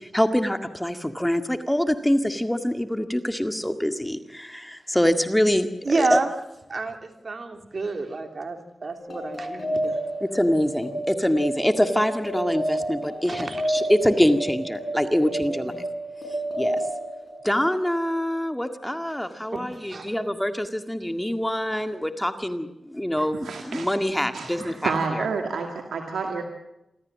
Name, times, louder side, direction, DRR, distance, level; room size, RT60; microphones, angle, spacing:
voice 1, 0.0-5.7 5.9-6.2 10.2-15.7 16.6-16.8 17.4-25.3, equal, 10° left, 8 dB, 1.9 m, -25 dB
voice 2, 5.8-6.3 6.7-10.0 13.3-13.6 15.4-15.7 19.5-20.1, right 3 dB, 55° right, 5 dB, 3.4 m, -29 dB
sound 1, 9.0-18.0, right 1 dB, 65° left, 7.2 m, -30 dB
voice 3, 23.2-23.9 24.3-26.4, right 4 dB, 90° right, 3 dB, 2.1 m, -29 dB
27.0 x 14.0 x 7.6 m, 0.91 s
cardioid pair, 45°, 0 cm